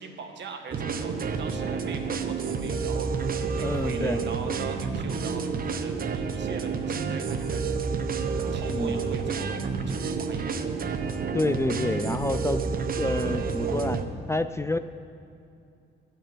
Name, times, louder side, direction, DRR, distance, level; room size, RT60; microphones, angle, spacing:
voice 1, 0.0-7.9 8.5-10.5, right 4 dB, 65° right, 5 dB, 1.4 m, -41 dB
sound 1, 0.7-14.1, right 5 dB, 45° right, 0.8 m, -29 dB
voice 2, 3.6-4.2 8.7-9.0 11.3-12.6 13.0-14.0 14.3-14.8, left 2 dB, 15° left, 10 dB, 0.3 m, -28 dB
12.5 x 5.6 x 8.8 m, 2.5 s
cardioid pair, 90°, 20 cm